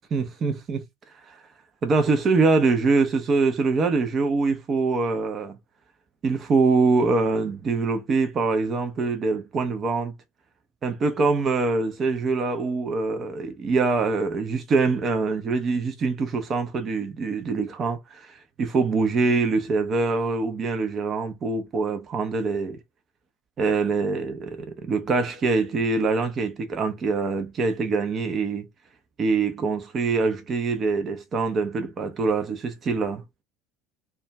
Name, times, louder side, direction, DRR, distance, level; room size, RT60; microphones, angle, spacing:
voice 1, 0.1-0.8 1.3-1.4 1.8-5.6 6.2-10.1 10.8-22.8 23.6-28.7 29.2-33.2, right 4 dB, 35° right, 0.6 m, -24 dB
2.4 x 2.3 x 3.0 m
figure-of-eight pair, 70°, 0 cm